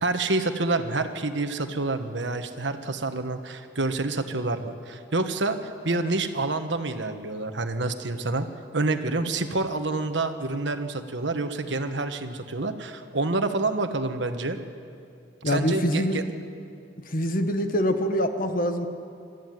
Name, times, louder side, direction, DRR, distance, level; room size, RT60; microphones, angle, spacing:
voice 1, 0.0-5.6 5.8-8.5 8.7-14.6 15.4-16.2, right 2 dB, 75° right, 8 dB, 1.4 m, -28 dB
voice 2, 15.4-16.2 17.1-18.9, equal, 50° left, 7 dB, 1.5 m, -24 dB
25.0 x 13.5 x 9.5 m, 2.4 s
head